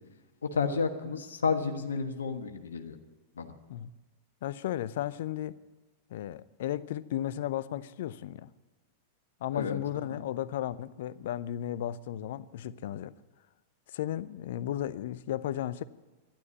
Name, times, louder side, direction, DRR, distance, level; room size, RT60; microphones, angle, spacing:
voice 1, 0.5-3.0 3.4-3.5 9.5-9.8 10.1-10.2, left 5 dB, 75° left, 1.3 m, -31 dB
voice 2, 4.4-5.6 6.1-8.5 9.4-13.1 13.9-15.8, left 12 dB, 60° left, 0.6 m, -34 dB
12.0 x 11.5 x 9.7 m
figure-of-eight pair, 95°, 0 cm